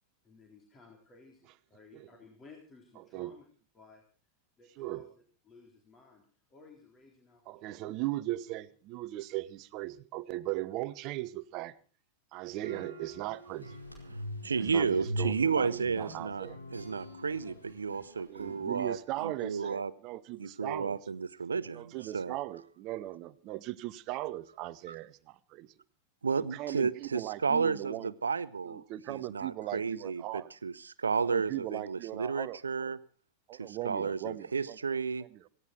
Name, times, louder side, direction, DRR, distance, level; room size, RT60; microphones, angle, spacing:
voice 1, 0.2-3.4 3.7-4.0 4.6-5.1 5.5-7.8 17.3-17.6, left 4 dB, 20° left, 3.9 m, -57 dB
voice 2, 7.5-11.7 12.3-13.8 14.6-16.6 18.2-21.0 21.7-25.7 26.5-28.1 28.6-30.5 31.2-33.0 33.5-34.8 35.3-35.4, right 16 dB, 40° right, 1.1 m, -38 dB
sound 1, 12.6-18.9, equal, 90° left, 4.6 m, -42 dB
voice 3, 14.4-19.9 20.4-22.4 24.9-25.0 26.2-28.8 29.1-33.0 33.6-35.3, right 5 dB, 75° right, 0.8 m, -32 dB
18.0 x 16.5 x 4.5 m
figure-of-eight pair, 90°, 0 cm